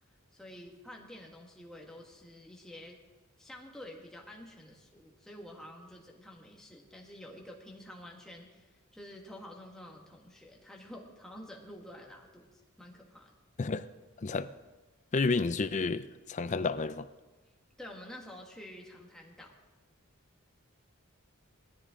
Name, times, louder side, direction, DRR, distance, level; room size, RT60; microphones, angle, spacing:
voice 1, 0.3-3.0 3.4-13.3 17.8-19.5, left 1 dB, 5° left, 1.7 m, -49 dB
voice 2, 14.2-14.5 15.1-17.1, left 4 dB, 35° left, 0.4 m, -30 dB
18.5 x 13.5 x 3.7 m
head